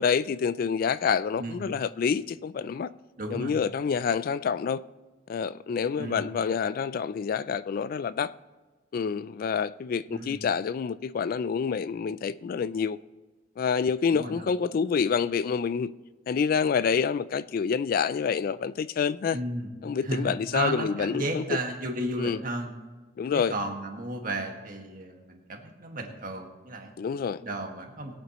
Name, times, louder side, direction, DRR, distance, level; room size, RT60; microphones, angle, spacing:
voice 1, 0.0-2.9 3.3-4.8 5.3-8.3 8.9-13.0 13.6-15.9 16.3-19.4 19.8-21.4 22.2-22.4 23.2-23.5 27.0-27.4, left 6 dB, 50° left, 0.3 m, -27 dB
voice 2, 3.2-3.6 6.0-6.3 10.1-10.4 14.1-14.5 19.3-19.7 20.0-22.7 23.3-26.9 27.4-28.1, right 2 dB, 50° right, 1.8 m, -33 dB
22.0 x 8.5 x 3.0 m
head